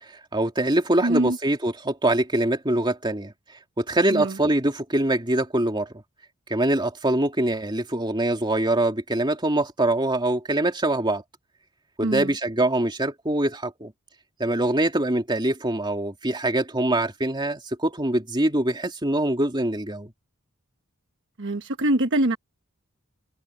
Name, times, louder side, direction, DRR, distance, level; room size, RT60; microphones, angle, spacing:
voice 1, 0.0-3.3 3.8-6.0 6.5-11.2 12.0-13.9 14.4-20.1, right 1 dB, 20° right, 2.8 m, -24 dB
voice 2, 1.0-1.4 4.1-4.4 12.0-12.3 21.4-22.4, right 1 dB, 55° right, 1.2 m, -23 dB
head